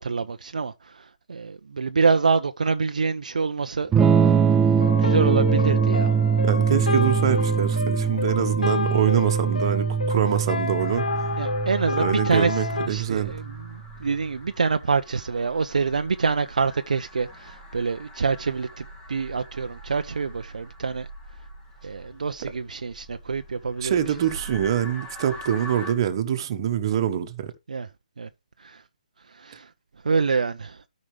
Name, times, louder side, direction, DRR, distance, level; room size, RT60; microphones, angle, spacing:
voice 1, 0.0-3.9 4.2-4.3 4.8-6.1 10.3-10.4 11.4-21.1 21.8-24.0 27.7-27.9 28.2-28.3 28.6-28.8 29.3-29.7 30.0-30.8, right 4 dB, 65° right, 0.6 m, -26 dB
Electric guitar / Strum, 3.9-13.7, right 7 dB, 10° right, 0.4 m, -23 dB
sound 1, 4.8-12.9, left 3 dB, 75° left, 0.6 m, -29 dB
voice 2, 6.4-11.3 12.0-13.3 22.4-22.5 23.8-27.5, right 9 dB, 35° right, 1.3 m, -25 dB
sound 2, 10.8-25.9, equal, 15° left, 2.1 m, -44 dB
13.5 x 5.1 x 3.3 m
figure-of-eight pair, 145°, 4 cm